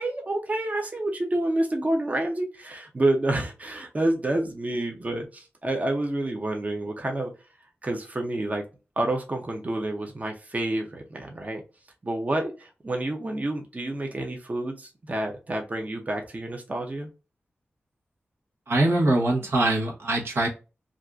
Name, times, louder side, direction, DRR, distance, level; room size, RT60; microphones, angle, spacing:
voice 1, 0.0-7.3 7.8-8.6 9.0-11.6 12.0-17.1, right 1 dB, 35° right, 0.7 m, -28 dB
voice 2, 18.7-20.5, right 1 dB, 80° right, 1.0 m, -23 dB
2.6 x 2.4 x 3.4 m
wide cardioid pair, 65°, 4 cm